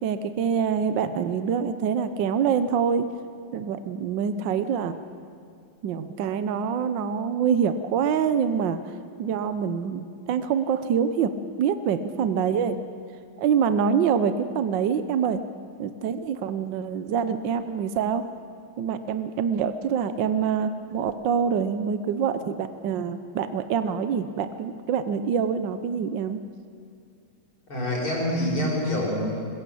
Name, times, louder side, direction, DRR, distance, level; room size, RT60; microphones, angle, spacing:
voice 1, 0.0-3.1 3.5-4.9 5.8-8.8 9.2-12.8 13.4-15.4 15.8-18.2 18.8-26.4, right 7 dB, 65° right, 10 dB, 1.5 m, -25 dB
voice 2, 27.7-29.3, left 1 dB, 85° left, -3 dB, 7.0 m, -26 dB
21.5 x 21.0 x 8.5 m, 2.3 s
omnidirectional pair, 2.2 m